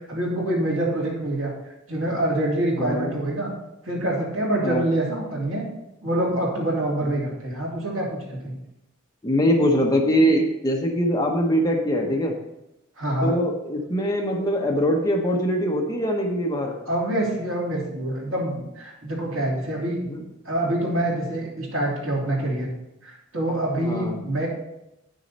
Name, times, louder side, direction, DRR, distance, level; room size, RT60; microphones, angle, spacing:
voice 1, 0.1-1.5 1.9-3.5 3.8-5.6 6.0-8.5 13.0-13.4 16.9-20.0 20.4-22.7 23.0-24.5, right 1 dB, 65° right, -4 dB, 3.0 m, -26 dB
voice 2, 2.8-3.1 4.6-4.8 7.0-7.1 9.2-12.3 13.2-16.7 20.1-20.2 23.8-24.2, equal, 20° left, 0 dB, 1.0 m, -22 dB
9.7 x 6.4 x 4.2 m, 0.90 s
head